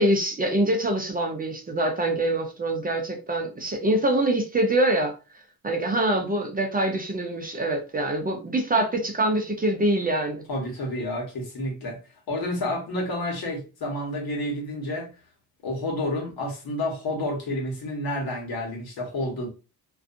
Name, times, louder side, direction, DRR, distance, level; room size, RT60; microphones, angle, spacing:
voice 1, 0.0-5.1 5.6-10.4, right 1 dB, 25° right, 0.5 m, -24 dB
voice 2, 10.5-12.0 12.3-15.1 15.6-19.5, left 1 dB, 70° left, 1.3 m, -30 dB
2.5 x 2.3 x 2.6 m
cardioid pair, 105°, 38 cm